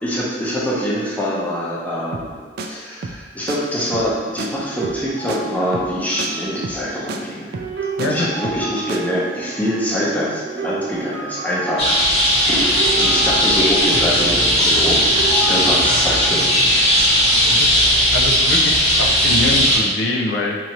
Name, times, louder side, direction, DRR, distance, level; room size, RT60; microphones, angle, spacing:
voice 1, 0.0-7.5 7.8-12.0 12.5-16.6, equal, 10° left, -6 dB, 0.7 m, -24 dB
sound 1, 2.1-2.3 2.6-2.7 3.0-3.2 3.5-3.6 3.9-4.1 4.4-4.5 4.8-5.0 5.3-5.4 5.7-5.9 6.2-6.3 6.6-6.8 7.1-7.2 7.5-8.1 8.4-8.6 8.9-9.0, right 3 dB, 60° right, 0.3 m, -30 dB
sound 2, 4.7-14.6 15.1-18.5 18.8-19.3, right 3 dB, 85° right, 0.7 m, -32 dB
voice 2, 8.0-8.3 17.5-20.6, left 2 dB, 75° left, 1 dB, 0.4 m, -24 dB
sound 3, 11.8-19.8, equal, 35° left, 1.1 m, -16 dB
4.4 x 2.5 x 2.9 m, 1.5 s
head